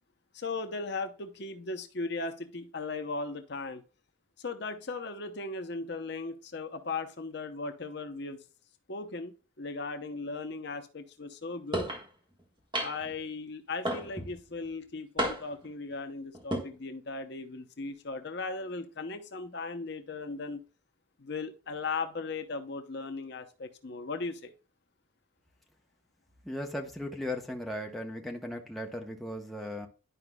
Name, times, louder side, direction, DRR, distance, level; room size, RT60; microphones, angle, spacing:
voice 1, 0.3-3.8 4.4-8.4 8.9-11.9 12.8-20.6 21.2-24.5, left 3 dB, 55° left, 0.7 m, -37 dB
sound 1, 11.7-12.0 12.7-13.1 13.8-14.3 15.2-15.7 16.3-16.7, right 1 dB, 20° right, 1.4 m, -32 dB
voice 2, 26.4-29.9, left 1 dB, ahead, 0.8 m, -37 dB
11.5 x 5.0 x 2.2 m
head